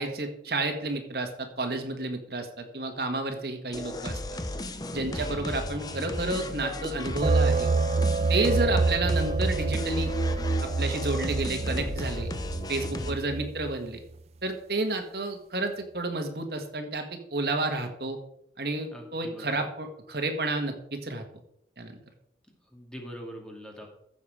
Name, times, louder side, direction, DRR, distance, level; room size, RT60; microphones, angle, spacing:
voice 1, 0.0-4.4 4.9-7.7 8.3-10.1 10.6-12.3 12.7-14.0 14.4-17.0 17.3-18.2 18.6-21.2 21.8-22.0, right 2 dB, 60° right, 5 dB, 1.7 m, -31 dB
sound 1, 3.7-13.1, left 1 dB, 20° left, 0.8 m, -35 dB
voice 2, 5.1-5.6 13.0-13.6 18.9-19.7 22.7-23.9, equal, 5° left, 0 dB, 2.3 m, -44 dB
sound 2, 7.2-13.7, right 3 dB, 35° right, 0.3 m, -27 dB
14.5 x 7.1 x 4.9 m, 0.72 s
head